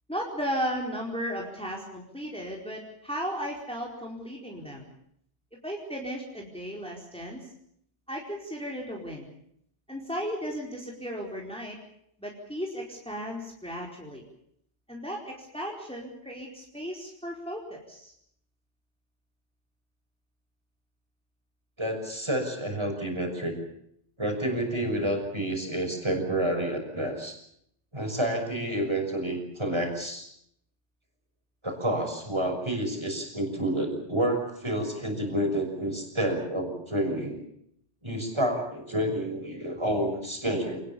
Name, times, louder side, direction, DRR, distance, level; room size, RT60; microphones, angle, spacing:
voice 1, 0.1-4.9 5.6-7.5 8.1-9.3 9.9-11.8 12.2-14.2 14.9-18.1, equal, 5° left, -1 dB, 4.6 m, -35 dB
voice 2, 21.8-23.5 24.2-27.4 27.9-30.3 31.6-37.4 38.0-40.8, right 1 dB, 20° right, 3 dB, 6.3 m, -29 dB
28.0 x 19.5 x 7.2 m, 0.71 s
omnidirectional pair, 1.2 m